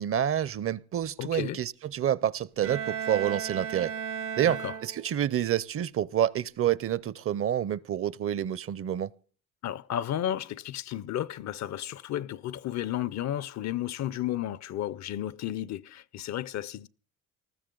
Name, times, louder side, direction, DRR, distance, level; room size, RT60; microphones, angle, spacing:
voice 1, 0.0-3.9 4.4-9.1, right 10 dB, 45° right, 0.6 m, -28 dB
voice 2, 1.2-1.6 4.4-4.7 9.6-16.9, left 12 dB, 65° left, 0.6 m, -33 dB
Bowed string instrument, 2.6-5.3, right 7 dB, 80° right, 1.3 m, -35 dB
19.5 x 14.0 x 3.8 m
cardioid pair, 90°, 30 cm